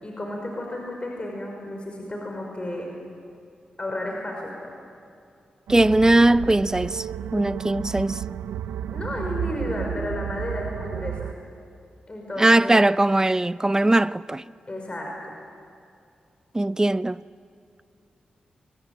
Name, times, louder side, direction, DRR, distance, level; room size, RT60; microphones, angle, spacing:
voice 1, 0.0-2.9 3.8-4.7 8.9-11.3 12.1-13.0 14.7-15.1, left 1 dB, 35° left, 5.4 m, -32 dB
voice 2, 5.7-7.1 7.3-8.2 12.4-14.4 16.5-17.2, right 2 dB, 20° right, 0.6 m, -20 dB
sound 1, 5.7-11.3, right 9 dB, 85° right, 0.5 m, -32 dB
23.5 x 21.0 x 9.1 m
supercardioid pair, 40°, 3 cm